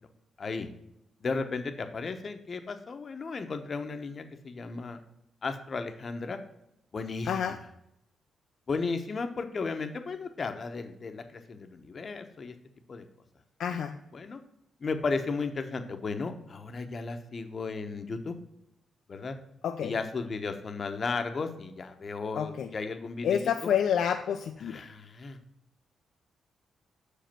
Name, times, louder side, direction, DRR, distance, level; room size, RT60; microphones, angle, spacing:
voice 1, 0.4-0.7 1.2-5.0 5.4-6.4 6.9-7.6 8.7-12.5 12.9-13.0 14.1-14.4 14.8-18.3 19.1-19.3 19.8-23.5 24.6-25.4, left 4 dB, 40° left, 7 dB, 0.9 m, -34 dB
voice 2, 13.6-14.0 19.6-19.9 22.4-22.7 23.2-24.9, left 8 dB, 75° left, 5 dB, 0.5 m, -28 dB
6.4 x 5.2 x 5.8 m, 0.81 s
cardioid pair, 110°, 0 cm